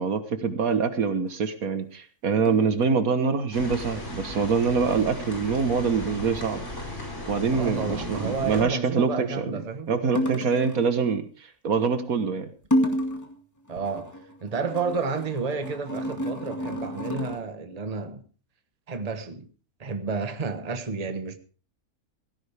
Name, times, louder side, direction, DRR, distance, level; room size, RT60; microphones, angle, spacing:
voice 1, 0.0-6.6 7.2-9.6 9.9-11.2 11.6-12.5, right 5 dB, 70° right, 1.7 m, -25 dB
sound 1, 1.2-1.4 2.5-2.8 4.9-5.4 7.6-8.1 10.2-10.9 12.6-13.4 13.7-17.4, equal, 10° left, 2.2 m, -30 dB
sound 2, 3.5-8.6, left 1 dB, 50° left, 5.2 m, -36 dB
voice 2, 7.5-9.9 13.7-18.2 18.9-19.5 19.8-21.4, right 4 dB, 25° right, 1.3 m, -31 dB
17.0 x 14.5 x 3.5 m
omnidirectional pair, 1.6 m